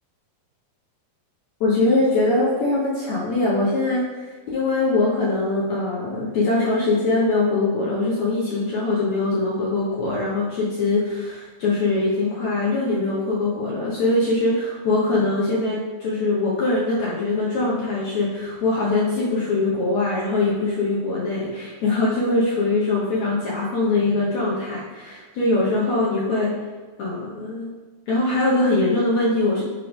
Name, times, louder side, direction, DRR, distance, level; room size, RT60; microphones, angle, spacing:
voice 1, 1.6-26.5 27.0-27.7 28.1-29.6, left 2 dB, 70° left, -6 dB, 1.7 m, -22 dB
8.2 x 3.3 x 5.1 m, 1.4 s
omnidirectional pair, 4.5 m